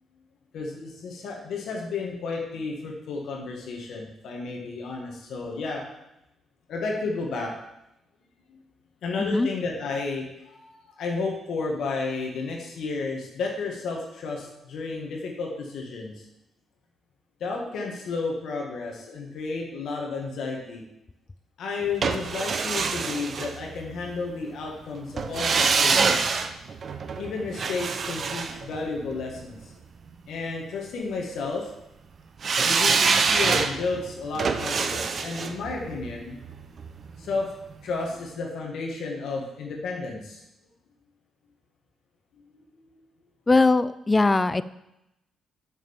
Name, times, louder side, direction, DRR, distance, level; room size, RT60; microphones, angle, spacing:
voice 1, 0.5-5.8 6.7-7.5 8.5-8.6 9.0-16.1 17.4-20.8 21.6-26.3 27.2-29.6 30.3-31.7 32.6-36.4 37.2-37.5 37.8-40.4, left 4 dB, 75° left, 0 dB, 1.8 m, -32 dB
sound 1, 22.0-24.1 25.2-29.4 32.4-37.4 37.7-37.8, right 5 dB, 50° right, 0.7 m, -26 dB
voice 2, 43.5-44.6, left 3 dB, 25° left, 16 dB, 0.5 m, -20 dB
7.0 x 6.0 x 7.2 m, 0.87 s
cardioid pair, 70°, 0 cm